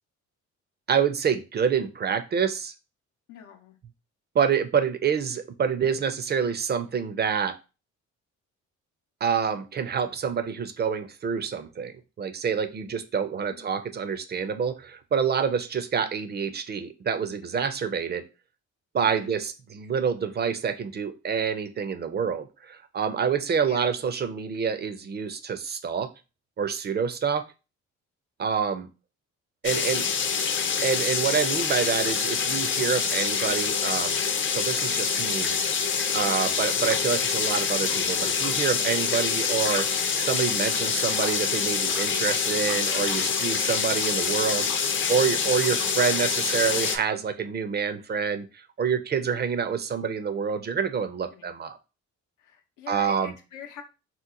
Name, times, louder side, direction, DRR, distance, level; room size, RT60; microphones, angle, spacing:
voice 1, 0.9-2.7 4.3-7.6 9.2-18.2 18.9-26.1 26.6-27.4 28.4-28.9 29.6-30.1 30.8-34.2 34.4-35.6 36.1-51.8 52.9-53.3, right 6 dB, 35° right, 10 dB, 0.4 m, -27 dB
voice 2, 3.3-3.7 13.5-13.8 19.0-19.3 23.6-23.9 29.8-30.1 36.1-36.6 51.3-51.6 52.4-53.8, left 8 dB, 90° left, 4 dB, 0.7 m, -44 dB
sound 1, 29.6-47.0, left 6 dB, 40° left, 0.5 m, -26 dB
2.9 x 2.1 x 3.6 m, 0.30 s
cardioid pair, 90°, 30 cm